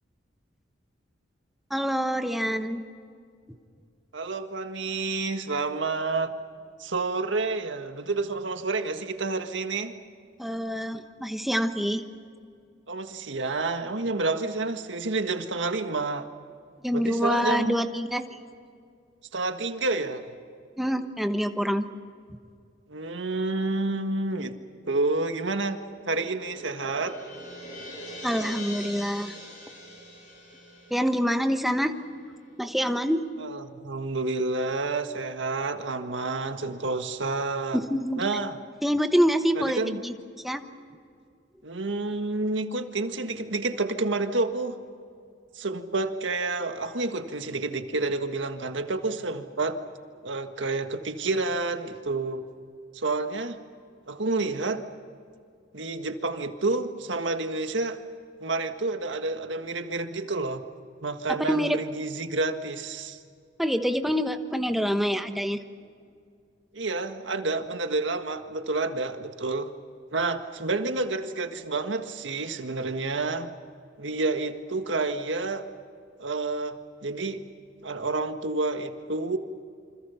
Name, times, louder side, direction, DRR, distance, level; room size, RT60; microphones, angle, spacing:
voice 1, 1.7-2.8 10.4-12.0 16.8-18.2 20.8-21.9 28.2-29.4 30.9-31.9 32.6-33.3 37.7-38.2 38.8-40.1 40.4-40.6 61.3-61.8 63.6-65.6, equal, ahead, 7 dB, 1.2 m, -26 dB
voice 2, 4.1-6.3 6.8-9.9 12.9-16.3 16.9-17.8 19.3-20.3 22.9-24.6 24.8-25.8 26.1-27.2 33.4-37.8 38.2-38.6 39.6-40.0 41.6-44.8 45.5-49.8 50.2-52.4 52.9-53.6 54.1-54.8 55.7-58.0 58.4-60.6 61.0-63.2 66.7-69.7 70.1-73.5 74.0-75.7 76.2-77.4 77.8-79.4, right 3 dB, 80° right, 7 dB, 1.7 m, -29 dB
sound 1, 25.6-32.2, equal, 45° left, 7.8 m, -43 dB
28.0 x 26.0 x 5.8 m, 2.3 s
head